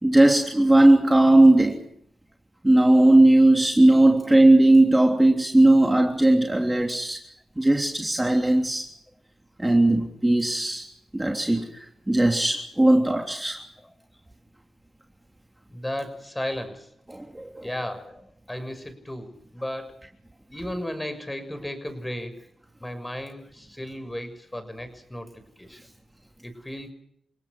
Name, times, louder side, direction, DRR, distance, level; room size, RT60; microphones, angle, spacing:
voice 1, 0.0-1.8 2.6-7.2 7.6-8.9 9.6-10.8 11.1-11.7 12.1-13.6 17.1-17.7, right 1 dB, 15° right, 2 dB, 3.3 m, -18 dB
voice 2, 15.7-16.9 17.6-20.0 20.5-22.4 22.8-25.3 25.6-25.8 26.4-26.9, left 1 dB, 15° left, 9 dB, 6.4 m, -34 dB
30.0 x 18.0 x 6.3 m, 0.71 s
supercardioid pair, 45°, 0 cm